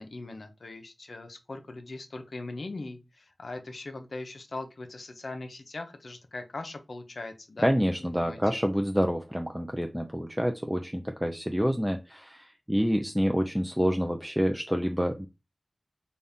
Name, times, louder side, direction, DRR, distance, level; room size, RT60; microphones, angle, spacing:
voice 1, 0.0-7.7 8.0-8.4, left 2 dB, 70° left, 6 dB, 0.7 m, -40 dB
voice 2, 7.6-15.3, equal, 5° right, 4 dB, 0.5 m, -27 dB
4.0 x 2.4 x 3.5 m, 0.26 s
wide cardioid pair, 50°, 0 cm